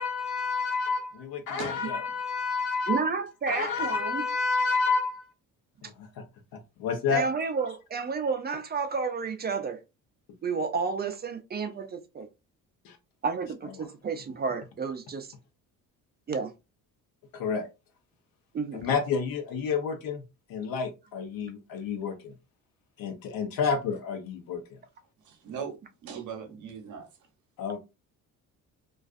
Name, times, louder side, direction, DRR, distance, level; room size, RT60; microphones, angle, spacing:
voice 1, 0.0-3.1 3.5-5.3 5.8-6.2 6.8-7.2 12.8-13.0 13.8-13.9 17.3-17.6 18.7-20.2 20.5-22.3 23.0-24.8 27.6-27.8, left 5 dB, 80° left, 0.8 m, -29 dB
voice 2, 2.9-4.3 7.1-9.8 10.4-12.3 13.2-15.3 16.3-16.5 18.5-18.8, right 5 dB, 30° right, 0.4 m, -31 dB
voice 3, 25.2-27.1, right 6 dB, 60° right, 0.8 m, -39 dB
2.4 x 2.3 x 2.4 m
cardioid pair, 120°, 34 cm